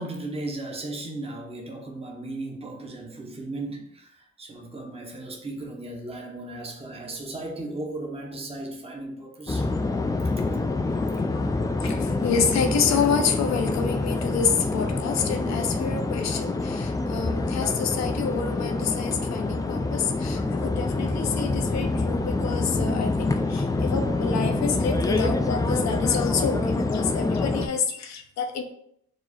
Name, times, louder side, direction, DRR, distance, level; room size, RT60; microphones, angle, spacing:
voice 1, 0.0-9.7, right 2 dB, 20° right, 0 dB, 0.9 m, -36 dB
sound 1, 9.5-27.7, left 3 dB, 10° left, 0.3 m, -26 dB
voice 2, 11.8-28.6, left 6 dB, 65° left, 6 dB, 0.7 m, -28 dB
4.7 x 2.0 x 4.1 m, 0.71 s
cardioid pair, 90°, 30 cm